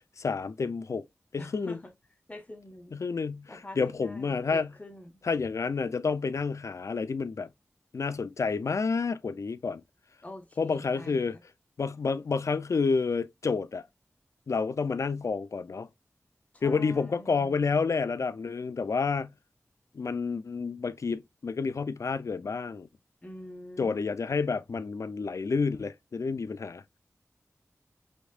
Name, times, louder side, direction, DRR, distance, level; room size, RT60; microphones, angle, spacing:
voice 1, 0.2-1.0 1.3-1.8 2.9-4.7 5.2-7.5 7.9-9.8 10.6-11.4 11.8-13.8 14.5-15.9 16.6-19.3 19.9-22.9 23.8-26.8, left 4 dB, 75° left, 0.5 m, -29 dB
voice 2, 1.4-1.9 2.3-3.0 3.5-5.2 10.2-11.2 16.5-17.5 23.2-24.0, left 1 dB, 25° left, 1.2 m, -45 dB
5.2 x 3.6 x 2.4 m
wide cardioid pair, 85°, 5 cm